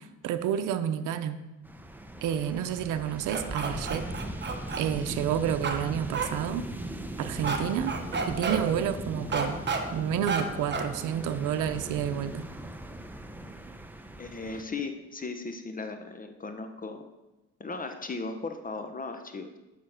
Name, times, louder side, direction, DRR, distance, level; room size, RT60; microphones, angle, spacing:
voice 1, 0.0-1.4 2.2-4.1 4.8-6.6 7.2-7.9 8.3-9.6 9.9-12.5, right 9 dB, 85° right, 9 dB, 0.7 m, -30 dB
sound 1, 1.6-14.6, right 1 dB, 5° right, 0.7 m, -39 dB
sound 2, 3.3-4.8 5.6-5.8 6.1-6.3 7.4-7.6 7.9-8.6 9.3-9.8 10.3-10.4 10.7-10.9, right 5 dB, 35° right, 1.2 m, -30 dB
voice 2, 14.2-17.1 17.6-19.5, left 3 dB, 30° left, 7 dB, 0.8 m, -37 dB
8.8 x 5.8 x 5.7 m, 1.0 s
cardioid pair, 90°, 30 cm